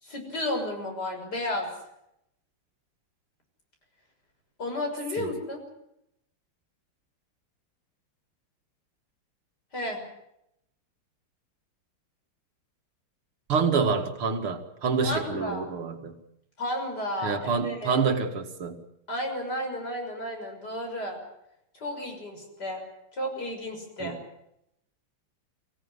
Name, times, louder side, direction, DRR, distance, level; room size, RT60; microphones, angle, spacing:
voice 1, 0.0-1.7 4.6-5.6 9.7-10.0 15.0-15.7 16.6-18.0 19.1-21.2 21.7-22.8 23.1-24.2, left 1 dB, 50° left, 6.9 m, -32 dB
voice 2, 13.5-16.2 17.2-18.8 24.0-24.2, right 5 dB, 80° right, 2.9 m, -27 dB
25.0 x 16.5 x 9.7 m
omnidirectional pair, 2.3 m